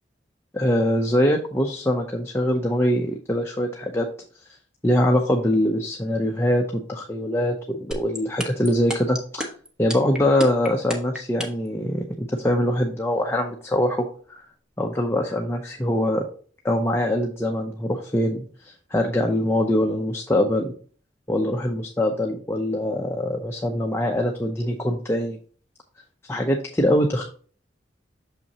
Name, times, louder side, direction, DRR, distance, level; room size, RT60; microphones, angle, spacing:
voice 1, 0.5-4.1 4.8-9.5 9.8-14.4 14.8-16.2 16.6-20.7 21.3-25.4 26.2-27.2, left 1 dB, 15° left, 2 dB, 0.6 m, -23 dB
sound 1, 7.9-11.7, left 1 dB, 5° right, 1.1 m, -29 dB
6.6 x 5.7 x 2.9 m, 0.43 s
head